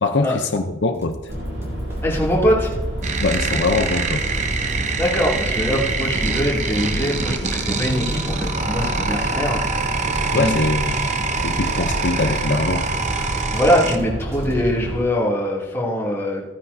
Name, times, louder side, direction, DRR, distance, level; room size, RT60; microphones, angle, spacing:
voice 1, 0.0-1.3 3.2-4.2 10.3-11.1 11.4-12.9, left 3 dB, 65° left, 5 dB, 0.7 m, -22 dB
sound 1, 0.9-14.6, equal, 15° right, 2.8 m, -38 dB
sound 2, 1.3-15.0, right 1 dB, 70° right, 3.1 m, -29 dB
voice 2, 2.0-2.7 5.0-9.6 10.3-10.6 13.5-16.4, equal, 15° left, -5 dB, 2.7 m, -22 dB
sound 3, 3.0-14.0, right 4 dB, 40° right, 0.8 m, -25 dB
15.5 x 9.9 x 2.7 m, 1.2 s
head